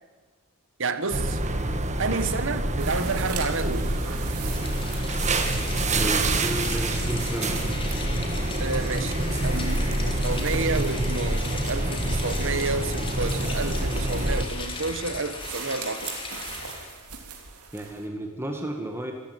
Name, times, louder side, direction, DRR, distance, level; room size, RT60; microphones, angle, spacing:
voice 1, 0.8-1.4 2.0-3.9 8.6-9.2 9.4-16.2, right 3 dB, 60° right, 11 dB, 1.6 m, -30 dB
sound 1, 1.1-14.5, right 1 dB, 30° right, 1.7 m, -27 dB
sound 2, 2.8-18.1, right 6 dB, 90° right, 3.6 m, -42 dB
Rain, 4.4-17.0, left 3 dB, 25° left, 3.1 m, -38 dB
voice 2, 5.9-7.6 17.7-19.1, right 1 dB, 10° right, 2 dB, 1.8 m, -32 dB
26.0 x 14.5 x 9.5 m, 1.4 s
head